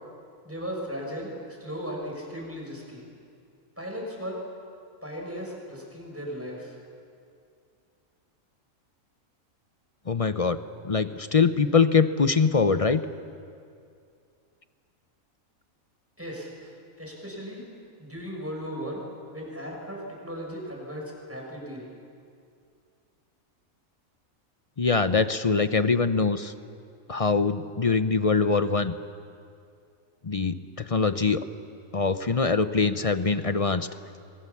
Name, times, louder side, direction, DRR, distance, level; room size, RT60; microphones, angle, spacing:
voice 1, 0.4-3.0 3.8-4.4 5.0-6.8 16.2-17.6 18.0-19.0 19.3-21.8, equal, 10° right, -1 dB, 6.7 m, -37 dB
voice 2, 10.1-10.6 10.8-13.0 24.8-26.5 27.1-28.9 30.2-30.6 30.9-31.4 31.9-33.9, left 4 dB, 35° left, 11 dB, 0.7 m, -23 dB
30.0 x 23.5 x 7.2 m, 2.4 s
omnidirectional pair, 1.4 m